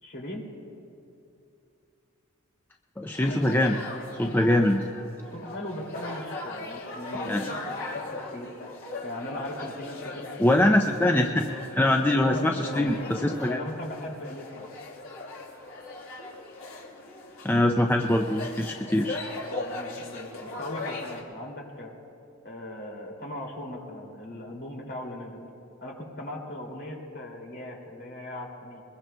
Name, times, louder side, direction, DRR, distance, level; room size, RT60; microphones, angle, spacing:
voice 1, 0.0-0.4 5.3-8.5 9.0-10.3 10.6-11.2 12.0-13.1 13.4-14.7 19.4-21.9 22.4-25.4 25.8-28.8, left 1 dB, 50° left, -1 dB, 2.5 m, -38 dB
voice 2, 3.0-3.8 4.2-4.8 7.2-7.4 10.4-11.4 11.7-13.6 17.4-19.2, left 1 dB, 10° left, 3 dB, 0.4 m, -23 dB
sound 1, 3.2-21.2, left 2 dB, 80° left, 2.3 m, -39 dB
22.5 x 21.0 x 2.2 m, 2.7 s
head